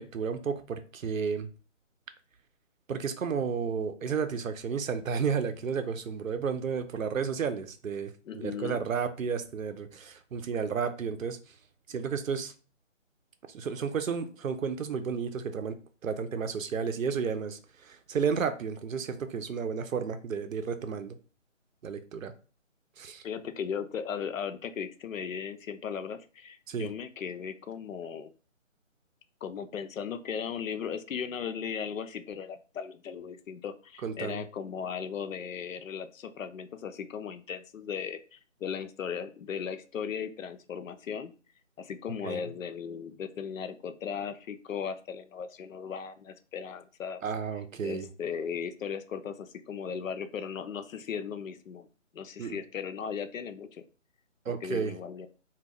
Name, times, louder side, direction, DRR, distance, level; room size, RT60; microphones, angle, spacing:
voice 1, 0.0-1.5 2.9-11.4 11.9-12.5 13.5-15.8 16.0-21.2 21.8-22.3 23.0-23.2 26.7-26.9 34.0-34.4 42.2-42.4 47.2-48.1 52.4-52.6 54.5-55.0, right 6 dB, 85° right, 0.6 m, -32 dB
voice 2, 8.3-8.8 23.2-28.3 29.4-41.3 41.8-47.2 47.8-51.9 52.1-53.8 54.5-55.3, left 7 dB, 85° left, 0.5 m, -37 dB
2.3 x 2.2 x 3.4 m
hypercardioid pair, 175°, 39 cm